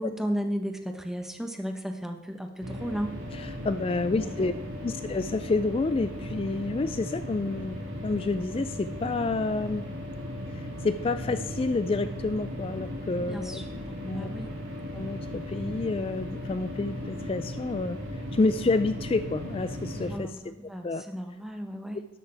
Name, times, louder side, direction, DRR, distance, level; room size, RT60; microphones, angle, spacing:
voice 1, 0.0-3.1 4.2-4.7 13.2-14.5 20.0-22.0, equal, ahead, 4 dB, 1.0 m, -35 dB
sound 1, 2.6-20.2, equal, 85° right, 4.6 m, -37 dB
voice 2, 3.3-4.5 4.8-9.9 10.5-13.6 14.0-14.3 14.9-20.3 20.8-21.0, left 3 dB, 30° left, 11 dB, 0.3 m, -29 dB
12.5 x 11.0 x 3.4 m, 1.0 s
head